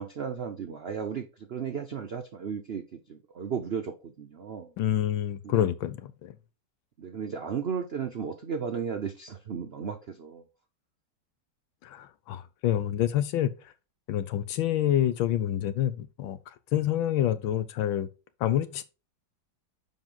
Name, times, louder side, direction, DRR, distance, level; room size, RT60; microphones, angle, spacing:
voice 1, 0.0-4.7 5.4-5.7 7.0-10.4, right 7 dB, 90° right, 0.5 m, -35 dB
voice 2, 4.8-6.3 11.8-13.5 14.1-16.4 16.7-18.1 18.4-18.8, left 11 dB, 90° left, 1.6 m, -27 dB
7.3 x 5.1 x 3.8 m
omnidirectional pair, 2.1 m